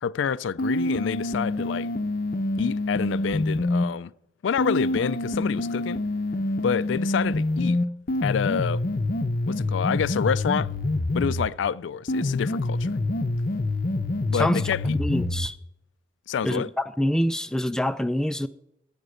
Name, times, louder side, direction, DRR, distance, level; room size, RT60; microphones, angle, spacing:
voice 1, 0.0-1.9 2.6-4.1 4.4-6.0 6.6-7.8 8.2-8.8 9.5-10.7 11.1-13.0 14.3-15.0 16.3-16.7, left 7 dB, 90° left, 0.4 m, -27 dB
sound 1, 0.6-3.9 4.6-11.6 12.1-15.6, left 2 dB, 50° left, 0.6 m, -26 dB
voice 2, 15.0-15.6 16.4-18.5, equal, 5° left, 0.3 m, -25 dB
15.0 x 5.3 x 6.4 m
head